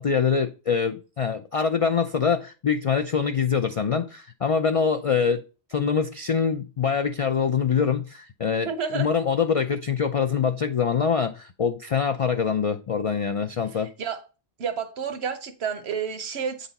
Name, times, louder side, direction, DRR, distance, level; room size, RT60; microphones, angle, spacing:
voice 1, 0.0-5.4 5.7-13.9, left 6 dB, 50° left, 0.4 m, -24 dB
voice 2, 8.6-9.1 13.7-14.2 14.6-16.7, right 7 dB, 70° right, 1.2 m, -30 dB
8.8 x 4.0 x 4.1 m
omnidirectional pair, 1.1 m